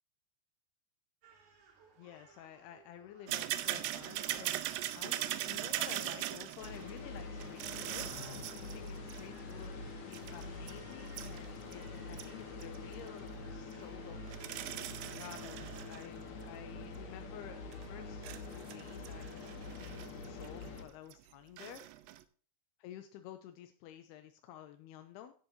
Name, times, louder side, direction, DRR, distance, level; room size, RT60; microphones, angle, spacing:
Crying sobbing, 1.2-20.0, right 5 dB, 60° right, 4.0 m, -64 dB
voice 1, 2.0-4.6 4.9-8.1 8.6-14.4 15.1-21.8 22.8-25.3, left 11 dB, 80° left, 7 dB, 2.5 m, -51 dB
sound 1, 3.3-9.5 10.1-11.8 12.1-12.3 12.6-12.9 13.7-13.8 14.3-16.1 16.4-16.5 17.7-17.9 18.2-20.8 21.1-21.2 21.6-22.2, right 14 dB, 80° right, 2.6 m, -40 dB
sound 2, 6.6-20.8, left 3 dB, 60° left, 3.7 m, -45 dB
12.5 x 10.5 x 2.8 m, 0.44 s
omnidirectional pair, 5.1 m